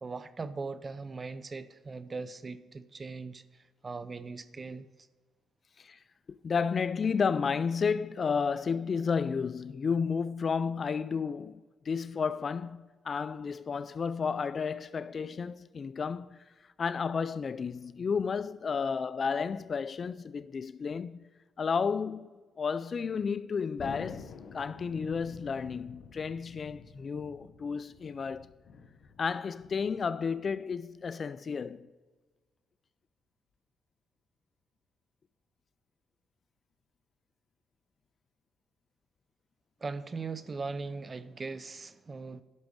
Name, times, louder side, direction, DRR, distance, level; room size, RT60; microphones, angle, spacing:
voice 1, 0.0-3.4 3.8-4.9 39.8-42.4, right 4 dB, 30° right, 0.6 m, -39 dB
voice 2, 6.3-16.4 16.8-21.2 21.6-22.3 22.6-28.5 29.2-31.9, left 5 dB, 45° left, 0.3 m, -32 dB
Thunder, 23.8-30.6, left 5 dB, 65° left, 0.8 m, -49 dB
11.0 x 6.3 x 6.7 m
cardioid pair, 90°, 0 cm